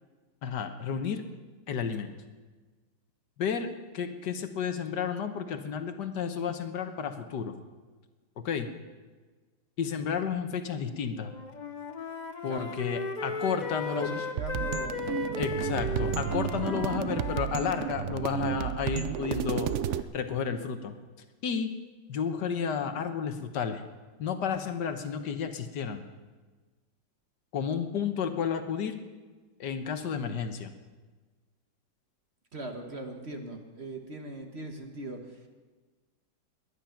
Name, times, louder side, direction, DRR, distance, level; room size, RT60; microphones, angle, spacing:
voice 1, 0.4-1.2 1.7-2.1 3.4-7.6 8.4-8.7 9.8-11.3 12.4-14.1 15.4-19.7 20.1-21.0 21.4-21.7 22.1-23.8 24.2-26.0 27.5-29.0 29.6-30.7, left 7 dB, 70° left, 8 dB, 1.6 m, -32 dB
Wind instrument woodwind instrument, 11.2-17.9, left 3 dB, 40° left, 0.6 m, -36 dB
voice 2, 12.5-12.8 13.4-15.0 32.5-35.5, right 2 dB, 40° right, 3 dB, 1.5 m, -40 dB
sound 1, 14.4-20.0, right 10 dB, 90° right, 0.6 m, -32 dB
21.0 x 10.5 x 5.8 m, 1.3 s
omnidirectional pair, 2.0 m